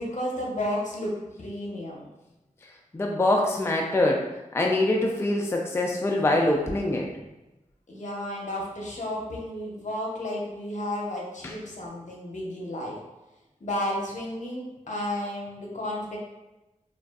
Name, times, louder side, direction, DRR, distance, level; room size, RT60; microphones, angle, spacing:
voice 1, 0.0-2.0 7.9-12.9 13.6-16.2, left 1 dB, 65° left, -3 dB, 0.7 m, -32 dB
voice 2, 2.9-4.3 4.5-7.1 11.4-11.6, left 1 dB, 20° left, 0 dB, 0.3 m, -24 dB
2.5 x 2.3 x 2.3 m, 1.0 s
cardioid pair, 40°, 14 cm